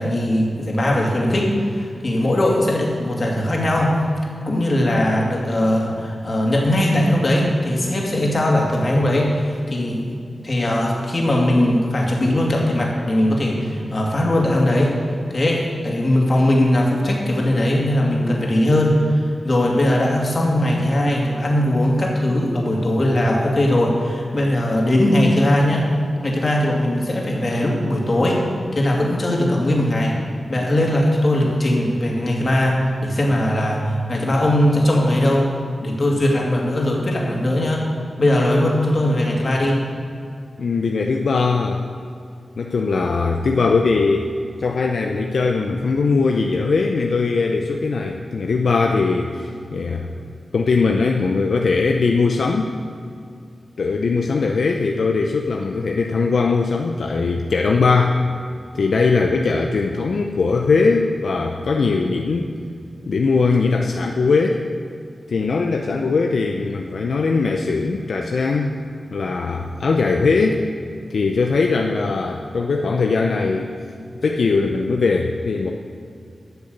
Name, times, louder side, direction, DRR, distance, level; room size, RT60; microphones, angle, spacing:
voice 1, 0.0-4.0 4.5-10.2 10.4-15.0 15.3-25.9 26.2-28.4 28.7-30.2 30.5-35.5 35.8-37.8 38.2-39.8, left 1 dB, 45° left, -2 dB, 2.6 m, -19 dB
voice 2, 40.6-41.8 42.6-44.3 44.6-50.1 50.5-52.7 53.8-58.2 58.7-62.5 63.1-64.6 65.3-68.8 69.1-70.6 71.1-73.8 74.2-75.7, left 4 dB, 75° left, 2 dB, 0.6 m, -20 dB
12.0 x 7.0 x 6.6 m, 2.4 s
wide cardioid pair, 70°, 0 cm